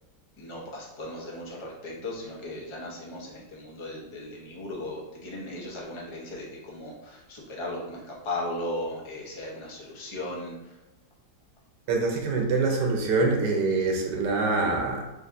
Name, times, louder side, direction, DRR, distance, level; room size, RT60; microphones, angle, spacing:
voice 1, 0.4-10.8, left 1 dB, 50° left, -3 dB, 0.3 m, -37 dB
voice 2, 11.9-15.0, right 3 dB, 70° right, 1 dB, 1.3 m, -25 dB
6.3 x 2.6 x 2.6 m, 0.97 s
omnidirectional pair, 2.0 m